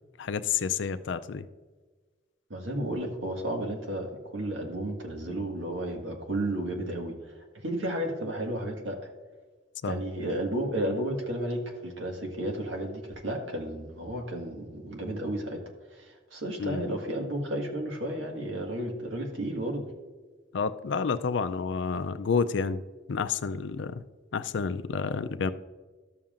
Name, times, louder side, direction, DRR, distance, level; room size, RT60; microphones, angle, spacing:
voice 1, 0.2-1.5 9.8-10.0 16.6-16.8 20.5-22.8 23.1-24.0 24.3-25.5, left 5 dB, 75° left, 12 dB, 0.4 m, -29 dB
voice 2, 2.5-9.0 9.8-15.6 15.9-19.9, right 1 dB, 85° right, 1 dB, 1.7 m, -33 dB
13.0 x 7.2 x 2.5 m, 1.3 s
head